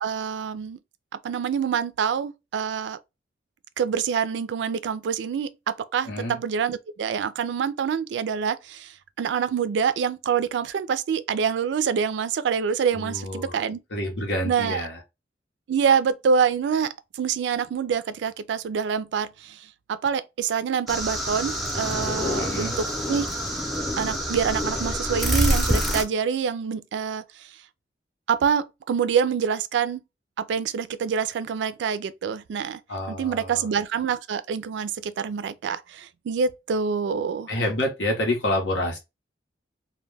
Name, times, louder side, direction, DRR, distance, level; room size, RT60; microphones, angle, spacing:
voice 1, 0.0-0.8 1.2-3.0 3.8-8.9 9.2-13.8 14.4-14.8 15.7-16.9 17.1-19.6 19.9-23.3 24.0-27.2 28.3-30.0 30.4-32.8 33.1-37.5, right 6 dB, 85° right, 0.3 m, -26 dB
voice 2, 6.0-6.4 12.9-13.6 13.9-15.0 22.4-22.8 32.9-33.7 37.5-39.0, left 1 dB, 85° left, 0.9 m, -28 dB
sound 1, 20.9-26.0, equal, ahead, 0.5 m, -26 dB
2.2 x 2.1 x 3.2 m
head